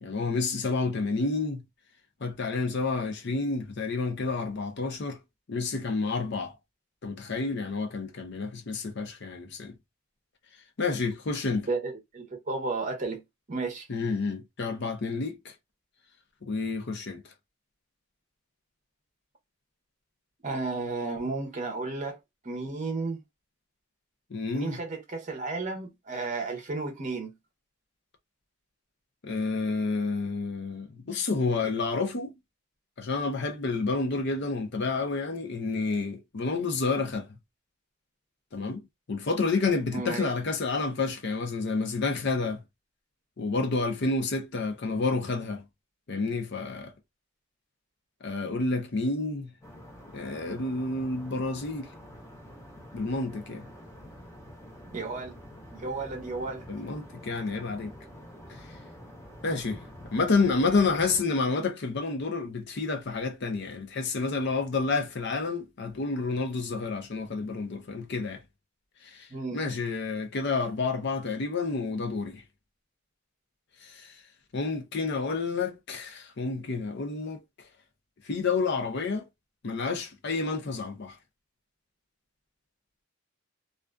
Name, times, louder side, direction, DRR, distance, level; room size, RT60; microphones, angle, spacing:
voice 1, 0.0-1.6 2.2-5.2 5.5-6.5 7.0-9.7 10.8-11.7 13.9-15.5 16.4-17.2 24.3-24.8 29.2-32.3 33.0-37.3 38.5-38.8 39.1-42.6 43.4-45.6 46.1-46.9 48.2-49.5 50.1-51.9 52.9-53.6 56.7-57.9 59.4-59.8 60.1-68.4 69.1-69.3 69.5-72.4 73.8-74.1 74.5-77.4 78.3-79.3 79.6-81.1, left 3 dB, 55° left, 0.6 m, -29 dB
voice 2, 11.7-13.2 13.5-13.9 20.4-22.2 22.4-23.2 24.5-27.3 39.9-40.3 54.9-55.4 55.7-56.6 69.3-69.6, right 3 dB, 35° right, 0.7 m, -33 dB
sound 1, 49.6-61.2, equal, 15° left, 0.8 m, -47 dB
2.4 x 2.3 x 2.2 m
head